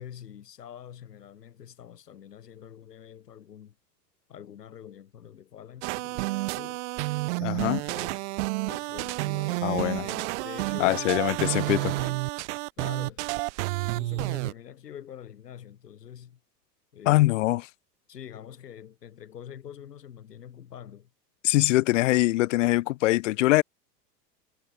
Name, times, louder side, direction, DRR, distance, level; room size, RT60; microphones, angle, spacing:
voice 1, 0.0-3.7 4.3-6.8 7.4-8.3 8.7-12.2 12.8-13.3 14.0-16.4 16.9-17.3 18.1-21.1, left 9 dB, 70° left, 4.8 m, -45 dB
sound 1, 5.8-14.5, right 23 dB, 45° right, 0.8 m, -30 dB
voice 2, 7.4-7.8 9.6-10.1 10.8-11.8 17.1-17.7 21.4-23.6, left 18 dB, 50° left, 0.5 m, -23 dB
figure-of-eight pair, 90°, 50 cm